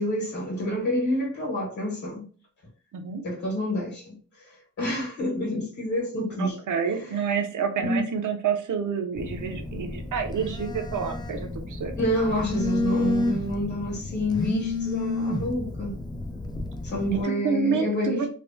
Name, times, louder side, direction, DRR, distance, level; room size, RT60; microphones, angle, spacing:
voice 1, 0.0-2.2 3.2-4.1 4.4-4.5 4.8-6.6 7.8-8.0 12.0-16.0 16.8-18.3, equal, 70° left, 1.4 m, -28 dB
voice 2, 6.4-11.9 17.2-18.3, right 6 dB, 75° right, 0.7 m, -28 dB
Telephone, 9.2-17.2, left 2 dB, 15° left, 0.4 m, -30 dB
3.3 x 2.1 x 2.7 m
cardioid pair, 100°, 31 cm